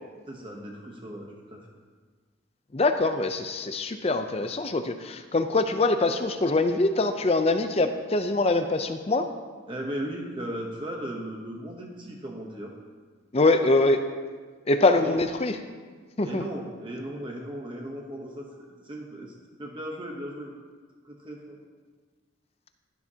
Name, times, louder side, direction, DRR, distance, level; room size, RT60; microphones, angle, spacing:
voice 1, 0.3-1.7 9.7-12.7 15.0-15.2 16.2-18.5 18.8-20.5 21.0-21.6, right 1 dB, 25° right, 0 dB, 0.9 m, -37 dB
voice 2, 2.7-9.3 13.3-14.0 14.7-15.6 16.2-16.4, left 2 dB, 30° left, 8 dB, 0.5 m, -23 dB
12.0 x 11.5 x 2.8 m, 1.5 s
head